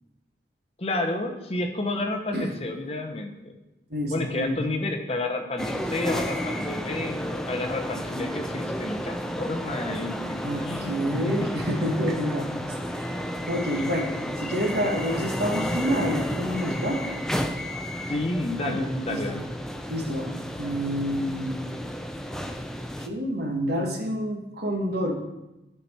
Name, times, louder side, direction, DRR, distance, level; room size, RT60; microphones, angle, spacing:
voice 1, 0.8-3.6 4.1-11.6 13.7-13.8 18.1-19.4, left 2 dB, 35° left, 4 dB, 0.8 m, -31 dB
voice 2, 3.9-4.6 10.4-12.5 12.9-13.2 13.5-14.1 14.4-17.0 18.7-19.2 19.9-20.3 20.6-21.6 23.0-25.1, equal, 65° right, 2 dB, 1.4 m, -28 dB
sound 1, 5.6-23.1, equal, 5° left, 0.4 m, -32 dB
12.5 x 4.5 x 4.2 m, 0.96 s
head